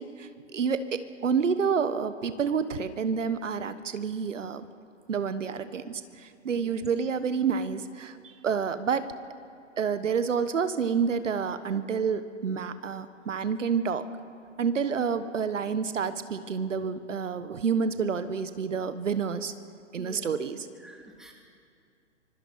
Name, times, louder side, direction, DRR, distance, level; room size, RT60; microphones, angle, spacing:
voice 1, 0.0-4.6 5.1-8.2 8.4-9.1 9.8-14.0 14.6-19.5 19.9-20.7, right 6 dB, 75° right, 12 dB, 1.3 m, -29 dB
voice 2, 19.9-20.3 20.8-21.3, equal, ahead, 0 dB, 2.0 m, -47 dB
24.5 x 24.5 x 5.7 m, 2.3 s
hypercardioid pair, 140°, 38 cm